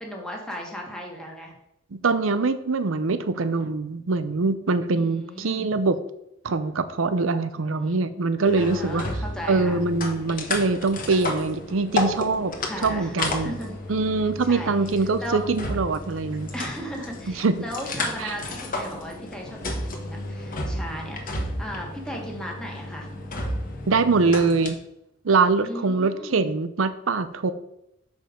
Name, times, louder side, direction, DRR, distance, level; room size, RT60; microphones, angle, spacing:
voice 1, 0.0-1.5 4.9-5.7 7.8-8.1 8.6-9.8 12.7-13.8 14.4-14.7 15.2-15.4 16.5-23.2 25.6-26.5, equal, 5° left, -1 dB, 1.7 m, -36 dB
voice 2, 1.9-6.0 6.4-9.0 9.5-12.5 12.8-13.5 13.9-16.5 17.3-17.5 18.2-18.3 23.9-24.8 25.2-27.5, right 3 dB, 85° right, 12 dB, 0.6 m, -23 dB
sound 1, 8.4-24.7, left 2 dB, 45° left, 1.2 m, -32 dB
6.7 x 5.4 x 5.1 m, 0.81 s
head